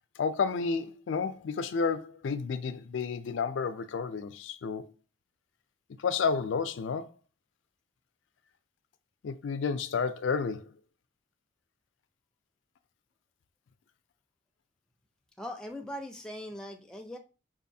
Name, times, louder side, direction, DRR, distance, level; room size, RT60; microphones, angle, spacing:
voice 1, 0.2-4.9 6.0-7.1 9.2-10.7, left 5 dB, 80° left, 0.4 m, -31 dB
voice 2, 15.4-17.2, left 1 dB, 5° left, 0.4 m, -40 dB
5.4 x 2.5 x 2.7 m
head